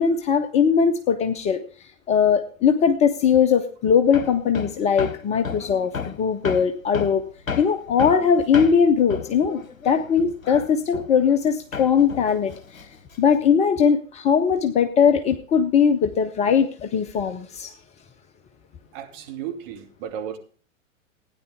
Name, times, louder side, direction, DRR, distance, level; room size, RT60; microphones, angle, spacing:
voice 1, 0.0-1.6 2.1-7.2 7.6-12.9 13.2-17.7, left 7 dB, 15° left, 9 dB, 0.6 m, -20 dB
Hammer, 4.1-11.5 11.7-13.5, left 6 dB, 80° left, 0.9 m, -33 dB
voice 2, 18.9-20.4, right 9 dB, 40° right, 3 dB, 2.7 m, -34 dB
16.0 x 9.9 x 3.6 m, 0.40 s
figure-of-eight pair, 105°, 40 cm